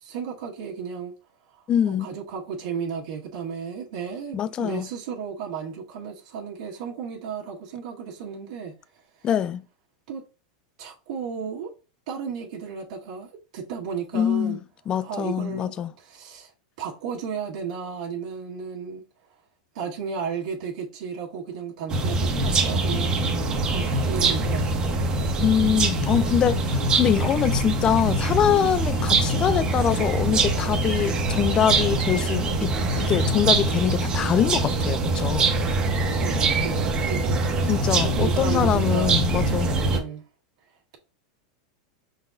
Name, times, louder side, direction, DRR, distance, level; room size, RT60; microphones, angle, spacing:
voice 1, 0.0-1.1 1.9-8.7 10.1-10.2 10.8-11.7 12.1-14.6 15.0-16.5 16.8-19.0 19.7-23.2 23.7-24.8 36.2-39.2 39.9-40.2, right 6 dB, 70° right, 1.5 m, -34 dB
voice 2, 1.7-2.1 4.3-4.9 9.2-9.6 14.1-14.6 14.9-15.9 25.4-32.7 33.0-35.5 37.7-39.7, left 9 dB, 20° left, 0.3 m, -24 dB
sound 1, 21.9-40.0, right 2 dB, 20° right, 0.8 m, -23 dB
5.2 x 4.0 x 2.5 m
supercardioid pair, 150°, 4 cm